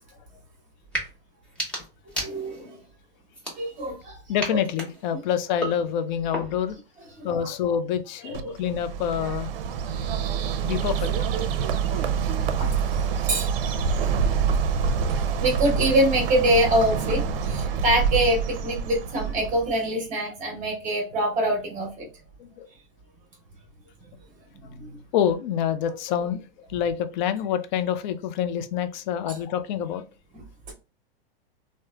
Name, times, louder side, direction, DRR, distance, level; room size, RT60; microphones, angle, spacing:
sound 1, 0.8-1.1 1.4-2.7 3.3-4.0 4.4-6.7, right 1 dB, 5° left, 0.8 m, -35 dB
voice 1, 2.1-2.8 3.5-4.2 4.5-4.6 5.1-5.2 7.1-7.5 8.2-8.8 12.6-13.5 13.8-13.9 15.4-22.1 24.5-25.0 29.3-29.4 30.3-30.7, right 1 dB, 25° right, 0.9 m, -25 dB
voice 2, 4.3-6.8 7.2-9.5 10.6-11.1 11.7-12.2 12.5-12.8 13.3-13.5 14.6-14.7 22.4-22.7 25.1-30.0, left 9 dB, 55° left, 0.4 m, -27 dB
Bird, 8.3-19.7, right 6 dB, 70° right, 0.5 m, -26 dB
3.0 x 2.1 x 2.3 m
hypercardioid pair, 140°, 29 cm